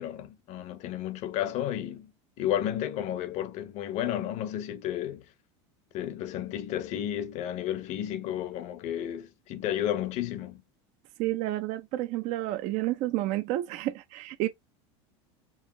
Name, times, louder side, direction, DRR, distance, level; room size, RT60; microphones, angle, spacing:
voice 1, 0.0-2.1 2.4-5.2 5.9-10.6, left 11 dB, 55° left, 0.8 m, -32 dB
voice 2, 11.2-14.5, right 15 dB, 55° right, 0.6 m, -30 dB
4.8 x 2.5 x 2.7 m
supercardioid pair, 105°, 14 cm